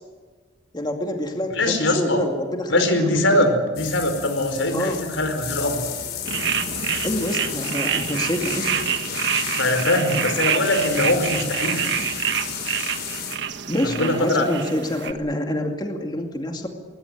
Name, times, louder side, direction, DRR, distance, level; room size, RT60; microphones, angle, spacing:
voice 1, 0.7-3.5 4.7-5.0 7.0-8.8 13.7-16.7, left 1 dB, 20° left, 3 dB, 2.3 m, -27 dB
voice 2, 1.5-2.2 2.7-5.8 9.6-11.8 13.8-14.4, left 1 dB, 85° left, 7 dB, 5.0 m, -22 dB
sound 1, 3.8-13.4, left 8 dB, 55° left, 4.0 m, -32 dB
sound 2, 6.2-15.1, right 8 dB, 65° right, 1.5 m, -27 dB
21.0 x 20.5 x 9.5 m, 1.5 s
head